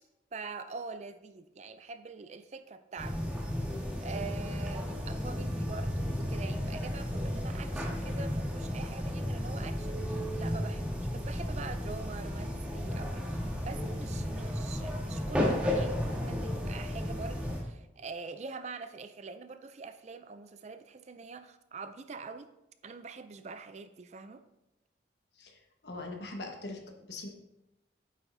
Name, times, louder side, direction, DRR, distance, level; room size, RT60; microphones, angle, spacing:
voice 1, 0.3-3.2 4.0-22.5 22.8-24.4, right 4 dB, 35° right, 10 dB, 0.4 m, -44 dB
sound 1, 3.0-17.6, equal, 5° right, 1.4 m, -33 dB
voice 2, 25.8-26.8 27.1-27.3, left 2 dB, 60° left, 3 dB, 1.3 m, -41 dB
9.0 x 7.3 x 2.7 m, 0.92 s
head